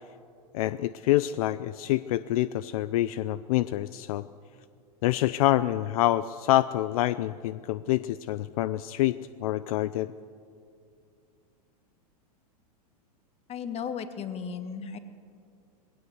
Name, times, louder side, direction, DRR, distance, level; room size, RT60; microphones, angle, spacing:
voice 1, 0.5-4.2 5.0-10.1, left 15 dB, 65° left, 15 dB, 0.5 m, -26 dB
voice 2, 13.5-15.0, left 7 dB, 30° left, 10 dB, 1.4 m, -35 dB
19.5 x 16.5 x 8.0 m, 2.4 s
hypercardioid pair, 110°, 20 cm